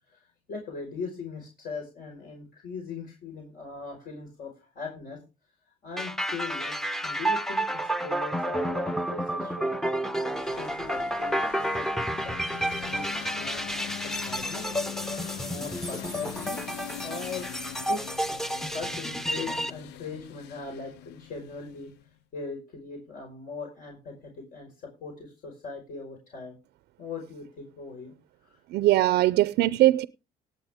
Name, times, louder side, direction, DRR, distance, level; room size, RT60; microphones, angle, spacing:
voice 1, 0.1-5.2 5.8-14.7 15.4-16.6 17.0-17.5 17.8-18.1 18.5-21.9 22.3-26.6 27.0-28.1 28.4-28.6, left 4 dB, 60° left, 5.0 m, -40 dB
sound 1, 6.0-19.7, right 1 dB, ahead, 0.7 m, -30 dB
sound 2, 10.3-22.1, left 12 dB, 85° left, 0.6 m, -42 dB
voice 2, 28.7-30.0, right 16 dB, 75° right, 0.5 m, -21 dB
18.0 x 8.6 x 3.6 m
cardioid pair, 110°, 17 cm